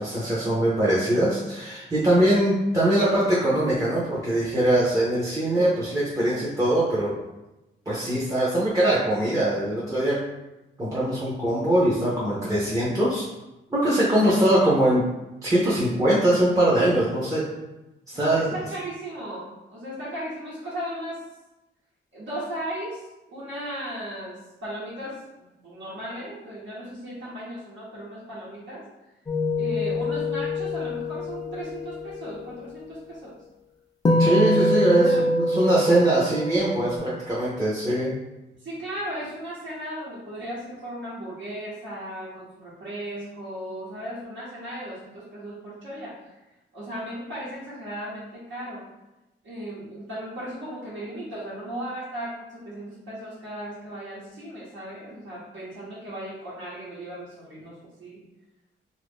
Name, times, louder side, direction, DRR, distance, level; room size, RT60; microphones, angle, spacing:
voice 1, 0.0-7.1 7.9-10.2 10.8-13.2 13.7-15.0 15.4-17.4 18.1-18.5 34.2-38.1, right 1 dB, 15° right, -8 dB, 0.6 m, -22 dB
voice 2, 18.1-21.2 22.1-25.2 25.6-28.8 29.6-33.3 34.9-35.3 38.6-46.2 46.7-48.8 49.4-58.2, right 1 dB, 70° right, -10 dB, 1.1 m, -36 dB
sound 1, 29.3-31.6 34.0-37.0, left 1 dB, 20° left, 0.3 m, -24 dB
2.9 x 2.4 x 3.5 m, 1.0 s
wide cardioid pair, 135°, 20 cm